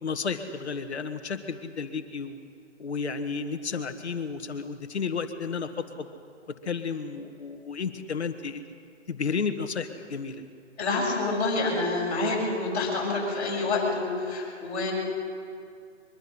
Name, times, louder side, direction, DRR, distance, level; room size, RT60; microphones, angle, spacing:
voice 1, 0.0-2.4 2.8-6.1 6.5-8.6 9.1-10.4, left 5 dB, 60° left, 8 dB, 1.8 m, -32 dB
voice 2, 10.8-14.9, left 3 dB, 30° left, -6 dB, 7.0 m, -27 dB
23.0 x 22.5 x 5.7 m, 2.3 s
hypercardioid pair, 155°, 37 cm